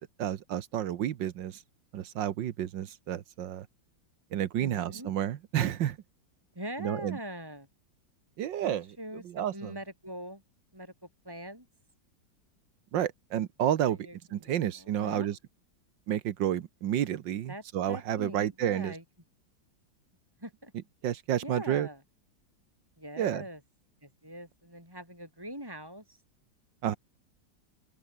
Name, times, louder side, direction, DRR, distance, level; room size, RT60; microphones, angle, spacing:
voice 1, 0.2-1.6 1.9-3.7 4.3-6.0 6.8-7.2 8.4-8.8 9.3-9.7 12.9-14.0 14.3-15.4 16.1-18.9 21.0-21.9 23.2-23.4 26.8-27.0, right 11 dB, 80° right, 1.7 m, -30 dB
voice 2, 4.6-5.1 6.5-7.7 8.6-10.4 10.7-10.9 11.2-11.7 13.8-15.4 17.5-19.0 20.4-20.7 21.4-22.0 23.0-23.6 24.0-26.2, equal, 10° right, 7.8 m, -42 dB
open air
omnidirectional pair, 2.0 m